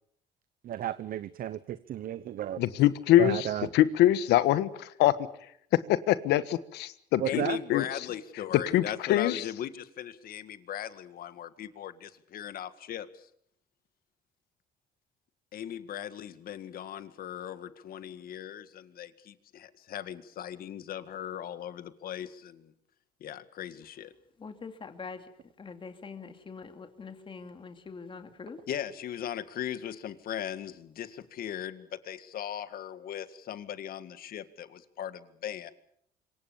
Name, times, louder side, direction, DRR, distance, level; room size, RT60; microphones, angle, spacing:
voice 1, 0.6-2.6 3.2-3.7 7.2-7.6, right 11 dB, 55° right, 15 dB, 0.9 m, -33 dB
voice 2, 2.6-3.5 3.7-5.1 5.9-7.4 7.7-7.8 8.7-8.8 9.1-9.4, left 13 dB, 85° left, 15 dB, 1.4 m, -23 dB
voice 3, 7.2-13.3 15.5-22.7 23.2-24.1 28.7-35.7, left 10 dB, 60° left, 12 dB, 1.9 m, -38 dB
voice 4, 24.4-25.3 25.6-28.6, left 5 dB, 30° left, 7 dB, 2.6 m, -44 dB
26.0 x 23.5 x 7.0 m, 0.69 s
cardioid pair, 110°, 17 cm